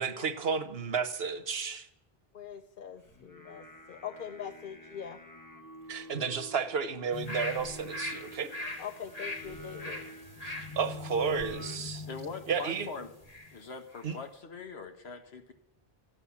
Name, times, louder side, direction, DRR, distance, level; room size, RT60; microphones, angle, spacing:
voice 1, 0.0-1.9 5.9-8.5 10.4-12.1 12.5-12.9 14.0-14.2, right 6 dB, 75° right, 11 dB, 1.2 m, -32 dB
voice 2, 2.3-5.2 8.8-10.0, left 8 dB, 60° left, 9 dB, 0.8 m, -42 dB
Singing, 3.0-11.8, equal, 20° left, 1.0 m, -50 dB
sound 1, 7.1-13.6 13.9-14.0, left 2 dB, 40° left, 1.6 m, -41 dB
voice 3, 12.1-13.1 13.5-15.5, left 4 dB, 85° left, 7 dB, 1.5 m, -42 dB
12.0 x 8.8 x 7.1 m, 0.79 s
omnidirectional pair, 1.0 m